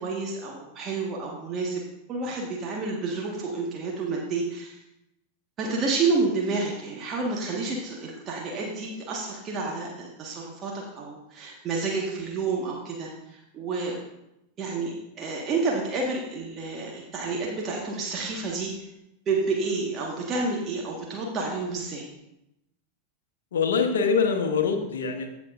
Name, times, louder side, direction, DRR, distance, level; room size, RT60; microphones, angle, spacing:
voice 1, 0.0-1.8 2.1-4.8 5.6-14.0 14.6-18.8 19.3-22.1, right 3 dB, 30° right, -1 dB, 1.5 m, -29 dB
voice 2, 23.5-25.3, left 5 dB, 65° left, 5 dB, 1.1 m, -24 dB
15.5 x 6.1 x 2.5 m, 0.86 s
figure-of-eight pair, 90°, 0 cm